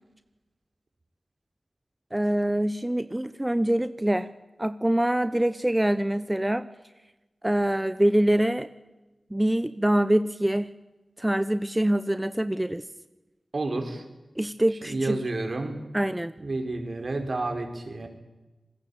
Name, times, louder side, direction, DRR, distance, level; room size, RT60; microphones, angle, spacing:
voice 1, 2.1-4.3 4.6-6.7 7.4-8.7 9.3-10.7 11.2-12.8 14.4-15.2 15.9-16.3, right 1 dB, 15° right, 12 dB, 1.0 m, -24 dB
voice 2, 13.5-14.0 14.9-15.8 16.4-18.1, right 2 dB, 65° right, 5 dB, 5.2 m, -30 dB
28.5 x 21.0 x 8.8 m, 1.1 s
wide cardioid pair, 55°, 0 cm